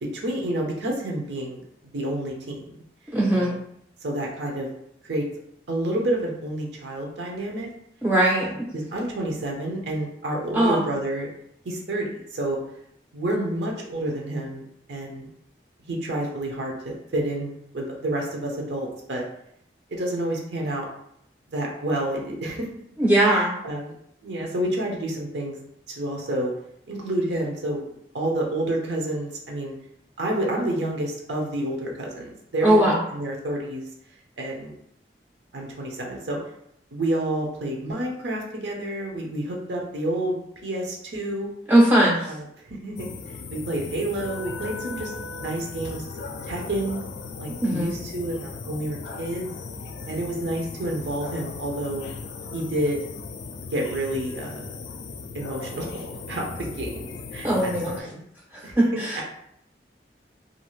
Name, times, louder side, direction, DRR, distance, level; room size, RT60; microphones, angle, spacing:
voice 1, 0.0-2.7 3.3-3.6 4.0-4.7 5.0-5.2 5.7-7.7 8.4-11.3 11.6-12.6 13.1-14.6 14.9-15.3 15.8-19.3 19.9-20.9 21.5-22.7 23.2-23.9 24.2-25.6 25.9-26.5 26.9-29.7 30.2-33.9 34.4-34.8 35.5-36.4 36.9-40.4 40.6-41.5 42.2-46.1 46.4-47.0 47.4-49.5 50.1-52.0 52.5-53.0 53.7-54.7 55.3-58.2 58.6-58.8 59.2-59.3, right 1 dB, 80° right, -1 dB, 0.6 m, -29 dB
voice 2, 3.1-3.5 8.0-8.7 10.5-10.8 23.0-23.5 32.6-33.0 41.7-42.3 47.6-47.9 57.4-57.9 59.0-59.2, right 1 dB, 10° right, -5 dB, 0.3 m, -19 dB
sound 1, 43.0-58.0, left 4 dB, 80° left, 0.3 m, -37 dB
2.6 x 2.4 x 3.0 m, 0.72 s
head